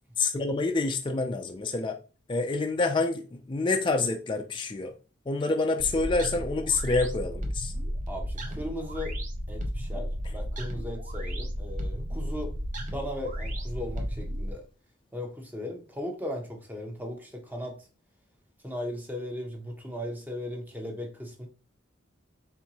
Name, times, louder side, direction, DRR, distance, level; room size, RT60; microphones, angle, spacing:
voice 1, 0.2-2.0 2.3-4.9 5.3-7.7, left 3 dB, 25° left, 0.4 m, -27 dB
sound 1, 5.8-14.5, equal, 40° right, 0.7 m, -33 dB
voice 2, 8.1-9.1 9.5-12.5 12.9-14.6 15.1-17.8 18.6-21.5, left 1 dB, 10° right, 0.9 m, -37 dB
4.5 x 3.7 x 2.8 m
head